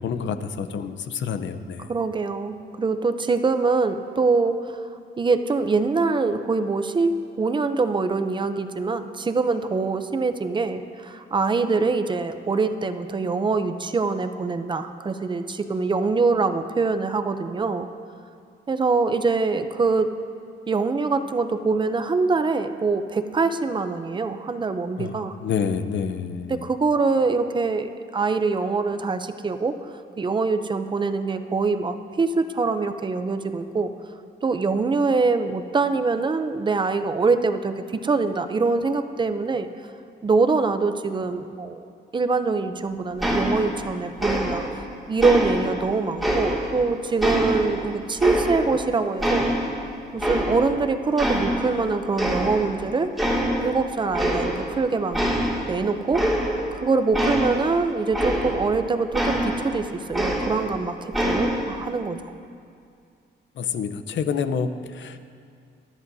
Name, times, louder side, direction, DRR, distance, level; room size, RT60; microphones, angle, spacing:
voice 1, 0.0-1.9 25.0-25.1 25.4-26.6 63.6-65.2, left 6 dB, 75° left, 10 dB, 0.8 m, -28 dB
voice 2, 1.9-4.8 5.2-17.9 18.7-20.1 20.7-25.4 26.5-33.9 34.4-39.7 40.2-41.8 42.1-44.6 45.1-49.5 50.1-53.1 53.6-55.2 55.7-56.2 56.7-62.3, right 4 dB, 25° right, 9 dB, 0.5 m, -24 dB
sound 1, 43.2-43.9 44.2-44.8 45.2-46.8 47.2-48.9 49.2-50.8 51.2-51.8 52.2-52.8 53.2-53.7 54.1-54.8 55.1-58.7 59.1-60.8 61.1-61.8, equal, ahead, 2.3 m, -25 dB
22.5 x 13.0 x 2.7 m, 2.3 s
wide cardioid pair, 170°, 19 cm